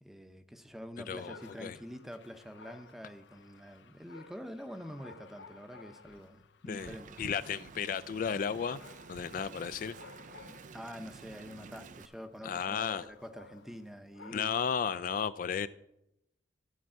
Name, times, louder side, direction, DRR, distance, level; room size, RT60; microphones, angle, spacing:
voice 1, 0.0-7.2 10.5-14.5, equal, ahead, 8 dB, 0.7 m, -46 dB
Dog, 1.1-14.8, left 4 dB, 75° left, 0.7 m, -57 dB
voice 2, 1.1-1.8 6.7-8.8 9.1-10.0 12.4-13.0 14.3-15.7, left 7 dB, 50° left, 14 dB, 0.3 m, -34 dB
Wind, 6.7-12.1, right 5 dB, 45° right, 0.4 m, -50 dB
12.5 x 4.6 x 7.5 m, 0.83 s
head